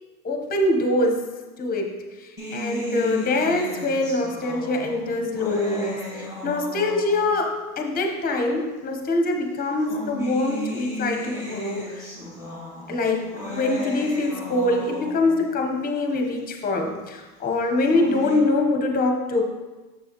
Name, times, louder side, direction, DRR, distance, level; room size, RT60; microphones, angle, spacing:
voice 1, 0.2-1.3 1.6-2.0 2.5-6.0 6.4-12.1 12.9-19.4, left 2 dB, 20° left, 3 dB, 0.9 m, -24 dB
sound 1, 2.4-7.5 8.4-8.5 9.6-15.5 17.6-18.4, equal, 5° right, 1.6 m, -35 dB
6.6 x 6.1 x 3.0 m, 1.2 s
supercardioid pair, 115°, 42 cm